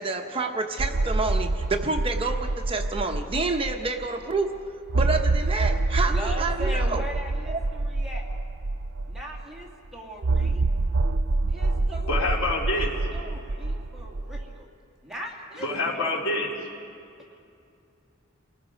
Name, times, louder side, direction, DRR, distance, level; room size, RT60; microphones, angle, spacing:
voice 1, 0.0-4.7 4.9-7.0 7.5-7.6, right 3 dB, 25° right, 4 dB, 0.9 m, -28 dB
sound 1, 0.8-4.0 4.4-4.5 4.9-9.4 10.2-14.5, right 2 dB, 75° right, 0.6 m, -26 dB
voice 2, 6.1-8.3 9.1-10.6 11.5-12.2 12.7-14.7 15.0-16.2, equal, ahead, -3 dB, 2.5 m, -39 dB
voice 3, 12.1-12.9 15.6-16.5, left 2 dB, 75° left, -3 dB, 4.3 m, -26 dB
30.0 x 19.0 x 5.2 m, 2.5 s
head